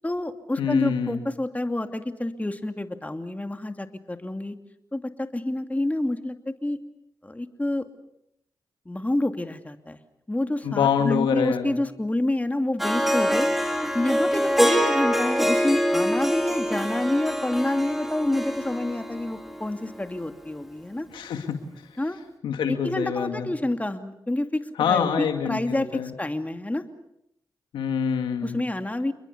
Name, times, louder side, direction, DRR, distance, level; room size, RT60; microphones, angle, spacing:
voice 1, 0.0-4.6 4.9-6.8 7.2-7.9 8.9-10.0 10.3-13.5 13.7-21.1 22.0-22.2 22.7-26.8 28.4-29.1, left 1 dB, 20° left, 7 dB, 2.7 m, -28 dB
voice 2, 0.6-1.2 10.6-11.8 21.1-21.6 22.4-23.5 24.8-26.1 27.7-28.6, left 7 dB, 90° left, 6 dB, 2.3 m, -25 dB
Harp, 12.8-20.0, equal, 5° right, 4.5 m, -25 dB
29.0 x 22.0 x 7.0 m, 0.80 s
supercardioid pair, 40°, 8 cm